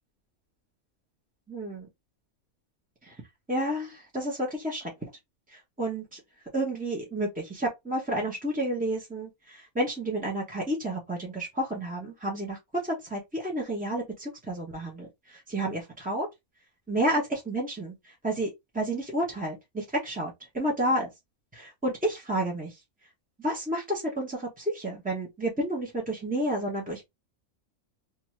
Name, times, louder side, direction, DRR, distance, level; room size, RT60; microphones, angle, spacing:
voice 1, 1.5-1.9 3.0-3.2 3.5-4.9 5.8-6.2 6.5-16.3 16.9-21.1 21.5-22.8 23.4-27.1, right 1 dB, 10° right, 0.4 m, -31 dB
2.5 x 2.4 x 3.1 m
omnidirectional pair, 1.5 m